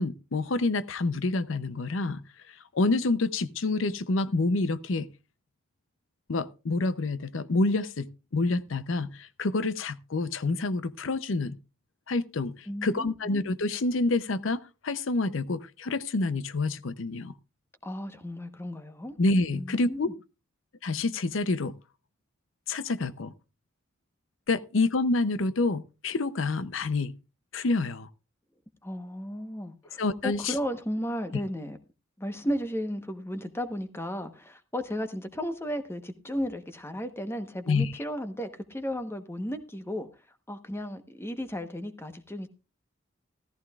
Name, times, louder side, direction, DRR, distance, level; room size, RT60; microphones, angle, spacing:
voice 1, 0.0-2.2 2.7-5.1 6.3-11.6 12.1-12.5 12.8-17.3 19.2-20.1 20.8-21.8 22.7-23.3 24.5-27.1 27.5-28.1 30.0-30.5 37.7-37.9, left 3 dB, 80° left, 0.7 m, -28 dB
voice 2, 12.7-13.3 17.8-19.1 19.5-20.1 28.8-31.8 32.2-40.2 40.5-42.5, equal, 10° left, 1.0 m, -34 dB
14.5 x 14.0 x 2.4 m
head